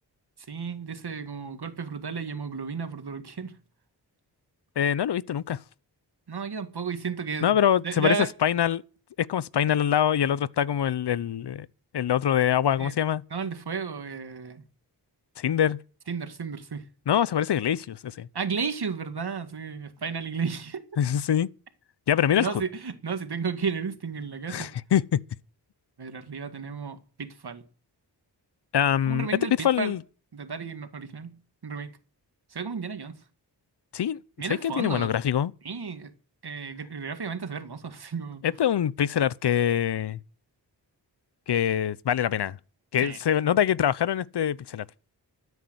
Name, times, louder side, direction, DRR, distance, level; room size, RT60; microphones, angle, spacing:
voice 1, 0.5-3.6 6.3-7.6 7.8-8.3 12.8-12.9 13.3-14.6 16.1-16.9 18.3-20.8 22.4-24.7 26.0-27.6 29.1-30.0 30.3-31.9 32.5-33.2 34.4-35.1 35.6-36.1 36.4-38.4 43.0-43.2, right 5 dB, 65° right, 2.1 m, -33 dB
voice 2, 4.8-5.6 7.4-8.2 8.4-8.8 9.2-11.7 11.9-13.2 15.4-15.8 17.1-18.3 21.0-21.5 22.1-22.5 24.5-25.2 28.7-29.3 29.6-30.0 33.9-34.2 34.6-35.5 38.4-40.2 41.5-42.6 42.9-44.8, left 9 dB, 70° left, 0.8 m, -24 dB
13.0 x 9.5 x 8.1 m
cardioid pair, 45°, 42 cm